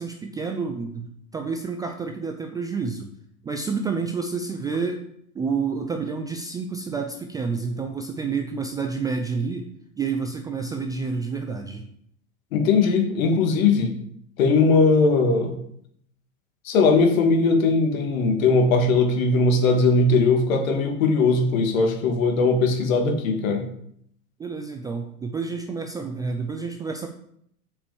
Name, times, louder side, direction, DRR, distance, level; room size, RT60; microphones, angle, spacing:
voice 1, 0.0-3.1 3.4-5.0 5.3-9.7 10.0-11.9 24.4-27.1, right 5 dB, 10° right, 4 dB, 0.3 m, -29 dB
voice 2, 12.5-13.9 14.4-15.6 16.7-23.7, left 3 dB, 65° left, 4 dB, 2.2 m, -19 dB
7.2 x 5.1 x 7.0 m, 0.70 s
hypercardioid pair, 110°, 44 cm